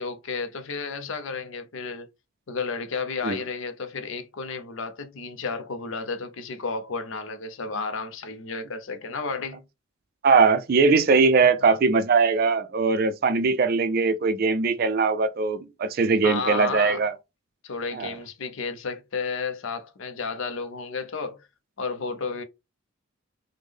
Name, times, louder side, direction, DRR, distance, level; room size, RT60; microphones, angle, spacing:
voice 1, 0.0-2.1 2.5-9.6 11.4-11.5 16.2-17.0 17.6-21.5 21.8-22.4, left 4 dB, 65° left, 0.5 m, -32 dB
voice 2, 10.2-17.1 17.9-18.1, right 4 dB, 45° right, 0.3 m, -21 dB
3.5 x 2.1 x 3.2 m
head